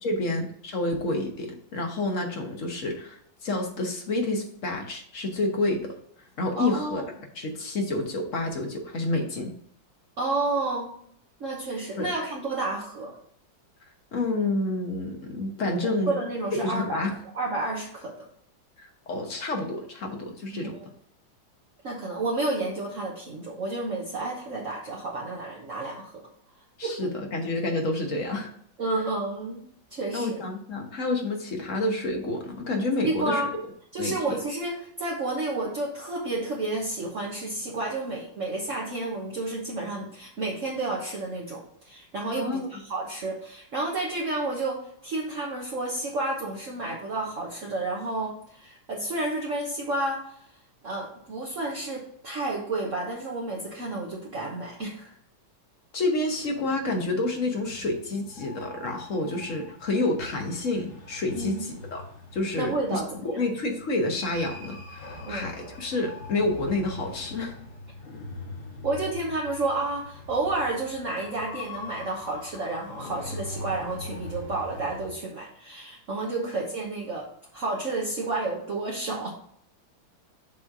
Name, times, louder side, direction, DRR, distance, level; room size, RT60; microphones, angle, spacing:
voice 1, 0.0-5.9 6.4-7.0 7.3-9.5 12.0-12.1 14.1-16.1 16.6-17.1 18.8-20.8 26.8-28.5 30.1-33.5 34.0-34.1 42.4-42.7 55.9-62.0 62.3-67.5, left 2 dB, 45° left, 2 dB, 1.3 m, -29 dB
voice 2, 6.6-7.0 10.2-10.9 11.4-13.1 15.8-17.0 17.3-18.1 20.5-20.8 21.8-26.2 26.8-27.1 28.8-29.6 29.9-30.4 33.0-33.5 33.9-50.4 50.8-55.1 61.3-61.7 62.6-63.4 65.2-65.5 68.8-77.3 77.5-79.3, right 2 dB, 45° right, -3 dB, 1.3 m, -31 dB
sound 1, 56.4-75.1, left 3 dB, 80° left, 2.6 m, -42 dB
7.3 x 3.2 x 5.3 m, 0.66 s
omnidirectional pair, 2.2 m